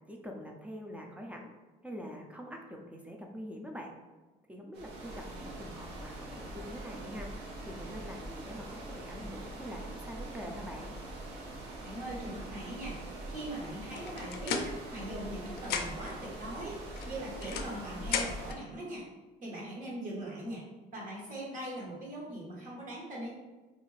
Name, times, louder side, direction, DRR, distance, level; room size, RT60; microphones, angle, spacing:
voice 1, 0.1-1.5 1.8-3.9 4.5-7.3 7.6-10.9, equal, 10° right, 1 dB, 0.4 m, -44 dB
sound 1, 4.7-18.5, right 2 dB, 85° right, 0.7 m, -43 dB
voice 2, 11.8-13.0 13.3-19.1 19.4-20.6 20.9-23.3, right 1 dB, 50° right, -4 dB, 1.1 m, -41 dB
sound 2, 14.0-15.3 15.6-16.2 17.0-18.6, left 6 dB, 70° left, 0.4 m, -36 dB
2.6 x 2.4 x 3.1 m, 1.2 s
cardioid pair, 110°, 17 cm